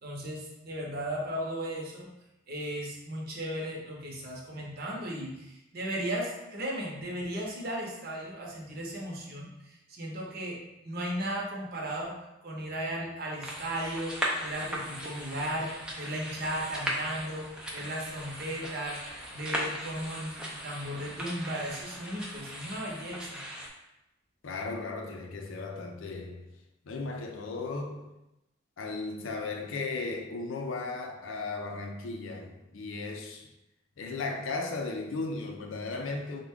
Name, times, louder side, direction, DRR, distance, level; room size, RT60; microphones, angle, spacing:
voice 1, 0.0-2.1 2.5-10.6 10.8-12.1 12.4-23.4, right 1 dB, 50° right, 0.7 m, -36 dB
sound 1, 13.4-23.7, equal, 5° right, 0.4 m, -38 dB
voice 2, 24.4-26.5 26.8-28.1 28.8-33.5 34.0-36.4, left 3 dB, 80° left, 0.5 m, -36 dB
3.4 x 2.2 x 3.5 m
head